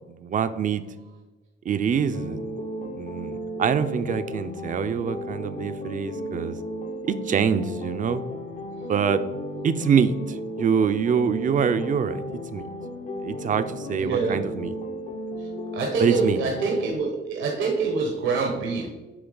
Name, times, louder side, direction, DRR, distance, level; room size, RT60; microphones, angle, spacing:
voice 1, 0.1-0.8 1.7-2.5 2.9-6.6 7.1-8.2 8.9-9.2 9.6-12.2 12.5-12.7 13.2-14.7 16.0-16.4, right 7 dB, 40° right, 11 dB, 0.5 m, -25 dB
sound 1, 2.1-17.0, equal, 40° left, 0.6 m, -34 dB
voice 2, 14.0-14.5 15.4-15.5 15.7-18.9, right 4 dB, 75° right, 1 dB, 1.0 m, -26 dB
7.9 x 3.2 x 3.9 m, 1.2 s
cardioid pair, 90°, 20 cm